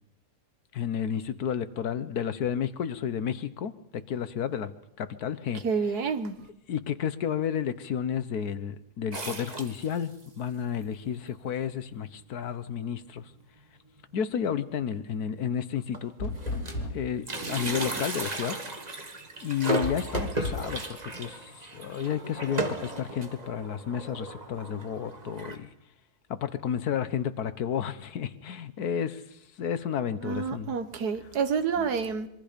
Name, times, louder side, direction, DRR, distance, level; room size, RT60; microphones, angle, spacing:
voice 1, 0.7-4.7 5.0-5.6 6.7-13.3 14.1-16.3 16.9-18.6 19.4-20.8 21.2-25.7 26.3-30.7 31.8-31.9, left 8 dB, 75° left, 1.5 m, -31 dB
voice 2, 5.6-6.4 30.2-32.3, right 5 dB, 80° right, 1.8 m, -28 dB
sound 1, 9.1-10.3 10.8-10.9 11.1-11.2 12.1-12.2 12.6-12.8 13.1-13.2 14.5-14.6 15.3-15.4 15.7-16.9 17.2-25.6, right 2 dB, 25° right, 1.6 m, -35 dB
sound 2, 16.2-17.2 19.8-20.7, left 2 dB, 90° left, 3.4 m, -33 dB
sound 3, 17.4-18.7, right 6 dB, 55° right, 1.3 m, -40 dB
26.0 x 23.5 x 5.2 m
omnidirectional pair, 1.7 m